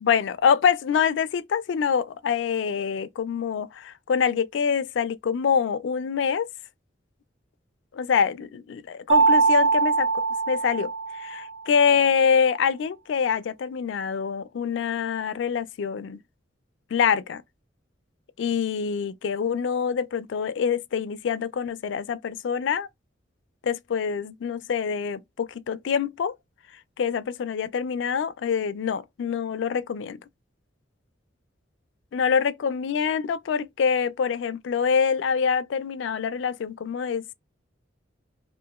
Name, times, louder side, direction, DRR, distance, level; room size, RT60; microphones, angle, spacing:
voice 1, 0.0-6.5 7.9-10.1 10.5-16.2 16.9-17.4 18.4-22.9 23.6-26.3 27.0-30.2 32.1-37.3, left 6 dB, 70° left, 0.3 m, -25 dB
Mallet percussion, 9.1-11.6, right 4 dB, 35° right, 0.8 m, -22 dB
2.8 x 2.4 x 2.3 m
head